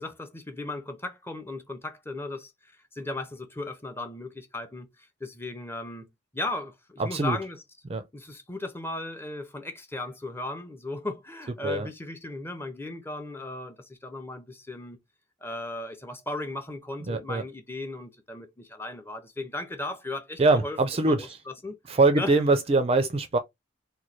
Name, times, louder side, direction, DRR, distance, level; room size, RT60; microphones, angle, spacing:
voice 1, 0.0-2.5 2.9-4.9 5.2-6.1 6.3-7.6 8.1-15.0 15.4-20.8 21.1-21.7 22.1-22.4, left 2 dB, 10° left, 0.6 m, -36 dB
voice 2, 7.0-7.4 7.9-8.0 11.6-11.9 17.1-17.4 20.4-21.4 21.9-23.4, right 3 dB, 30° right, 0.4 m, -23 dB
3.1 x 2.2 x 4.1 m
head